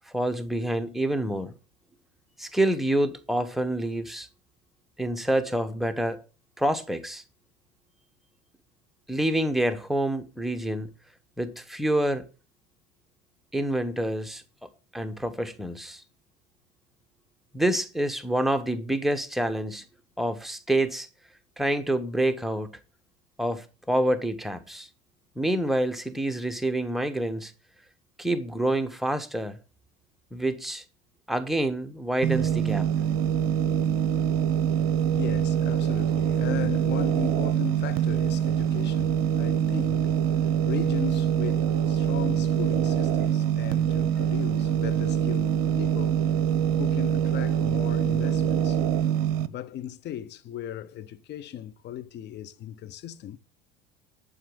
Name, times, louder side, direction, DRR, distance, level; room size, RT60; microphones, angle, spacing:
voice 1, 0.1-1.5 2.4-4.3 5.0-6.2 6.6-7.2 9.1-10.9 11.4-12.2 13.5-14.4 14.9-16.0 17.5-19.8 20.2-21.1 21.6-22.8 23.4-24.9 25.4-27.5 28.2-29.6 30.3-30.8 31.3-32.9, right 1 dB, ahead, 1.2 m, -27 dB
sound 1, 32.2-49.5, right 9 dB, 50° right, 0.7 m, -24 dB
voice 2, 34.4-46.3 46.8-48.8 49.5-53.4, left 11 dB, 35° left, 0.8 m, -37 dB
10.5 x 4.9 x 6.5 m
figure-of-eight pair, 70°, 29 cm